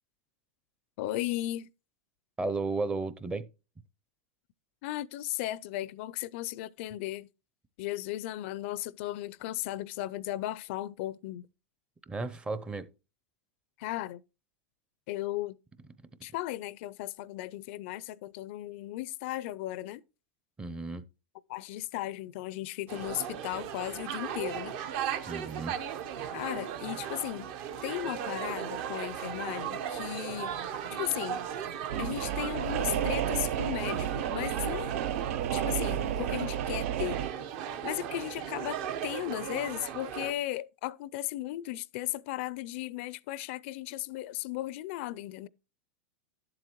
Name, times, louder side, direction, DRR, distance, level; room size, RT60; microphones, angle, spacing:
voice 1, 1.0-1.7 4.8-7.3 7.8-11.5 13.8-14.2 15.1-15.6 16.2-20.0 21.5-24.8 26.3-27.5 27.8-31.4 32.0-34.9 35.5-37.2 37.8-45.5, left 15 dB, 60° left, 0.4 m, -36 dB
voice 2, 2.4-3.5 12.1-12.9 20.6-21.0 25.3-25.8, right 3 dB, 15° right, 0.6 m, -33 dB
sound 1, 22.9-40.3, right 9 dB, 55° right, 0.9 m, -37 dB
sound 2, 31.9-37.3, right 10 dB, 75° right, 0.5 m, -32 dB
11.5 x 7.6 x 3.0 m
supercardioid pair, 125°, 8 cm